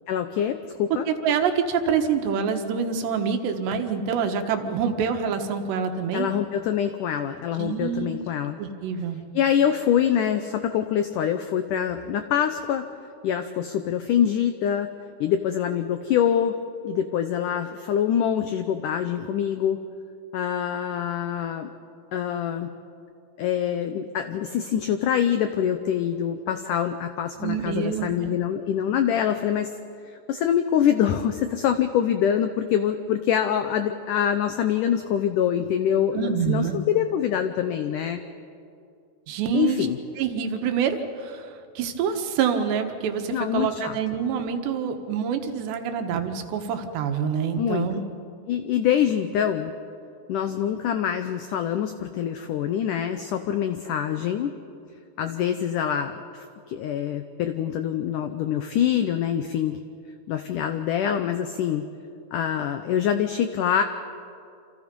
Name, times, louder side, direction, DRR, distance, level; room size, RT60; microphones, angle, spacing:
voice 1, 0.1-1.1 6.1-8.6 9.3-12.9 13.2-14.9 15.2-16.6 16.8-19.8 20.3-21.7 22.1-22.7 23.4-29.7 30.3-38.2 39.5-40.0 43.3-44.0 47.6-47.9 48.5-49.7 50.3-54.6 55.2-59.8 60.3-61.9 62.3-63.8, left 9 dB, 85° left, 8 dB, 1.8 m, -25 dB
voice 2, 1.1-6.3 7.6-8.2 8.6-9.2 27.4-28.4 36.1-36.8 39.3-39.8 40.2-41.5 41.8-48.0, right 7 dB, 90° right, 6 dB, 3.6 m, -26 dB
28.0 x 27.0 x 5.4 m, 2.5 s
omnidirectional pair, 4.8 m